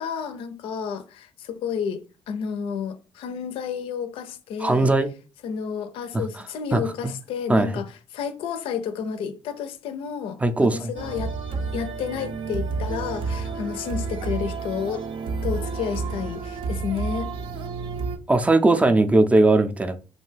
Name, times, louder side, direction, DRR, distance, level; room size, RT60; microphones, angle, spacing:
voice 1, 0.0-4.9 5.4-11.4 11.7-15.1 15.4-17.3, left 7 dB, 70° left, 0.4 m, -31 dB
voice 2, 4.6-5.1 6.7-6.8 7.5-7.7 10.4-10.9 18.3-20.0, right 2 dB, 15° right, 0.4 m, -19 dB
sound 1, 11.0-18.2, right 4 dB, 65° right, 0.5 m, -30 dB
2.5 x 2.2 x 3.2 m
supercardioid pair, 60°, 10 cm